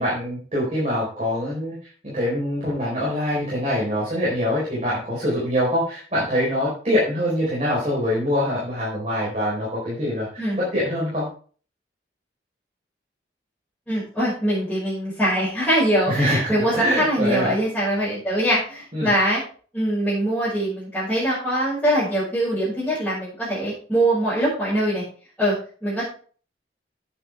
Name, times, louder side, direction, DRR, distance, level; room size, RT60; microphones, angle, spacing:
voice 1, 0.0-1.7 2.0-11.3 16.1-17.5 18.9-19.1, equal, 35° right, -7 dB, 4.3 m, -24 dB
voice 2, 13.9-19.4 19.7-25.0 25.4-25.5 25.8-26.0, right 1 dB, 5° left, -13 dB, 5.7 m, -23 dB
9.9 x 8.6 x 3.5 m, 0.41 s
head